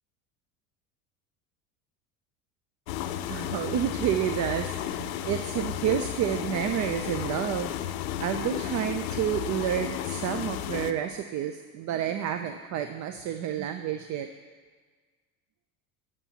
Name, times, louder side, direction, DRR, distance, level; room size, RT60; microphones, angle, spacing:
sound 1, 2.9-10.9, left 11 dB, 75° left, 0.6 m, -33 dB
voice 1, 3.3-7.8 8.2-14.3, right 10 dB, 45° right, 8 dB, 0.5 m, -30 dB
11.0 x 8.4 x 2.9 m, 1.5 s
hypercardioid pair, 90°, 43 cm